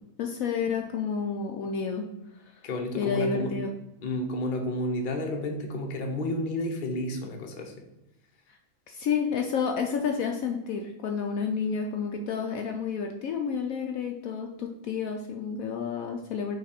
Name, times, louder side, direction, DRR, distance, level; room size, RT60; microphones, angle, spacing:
voice 1, 0.2-2.0 3.0-3.7 8.9-16.6, left 6 dB, 70° left, 3 dB, 1.0 m, -30 dB
voice 2, 2.6-3.5 4.0-7.7, left 1 dB, 40° left, 2 dB, 0.9 m, -31 dB
5.5 x 3.4 x 5.0 m, 0.95 s
omnidirectional pair, 1.6 m